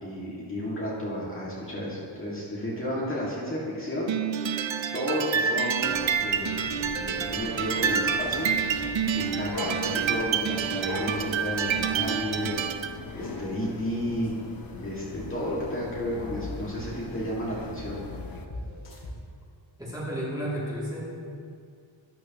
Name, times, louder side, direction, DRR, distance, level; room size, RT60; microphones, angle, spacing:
voice 1, 0.0-4.2 4.9-8.5 9.1-12.7 13.1-14.3 14.8-18.1, equal, 25° left, -7 dB, 2.0 m, -32 dB
sound 1, 4.0-5.5 5.8-6.0 6.3-6.4 7.0-11.0 11.3-11.4 12.8-19.1, left 1 dB, 85° left, 2.0 m, -50 dB
sound 2, 4.1-12.9, right 7 dB, 70° right, 0.6 m, -28 dB
sound 3, 5.9-18.5, left 4 dB, 45° left, 0.8 m, -40 dB
voice 2, 19.8-21.1, equal, 10° right, -7 dB, 2.5 m, -32 dB
12.5 x 9.9 x 3.0 m, 2.3 s
wide cardioid pair, 130°, 48 cm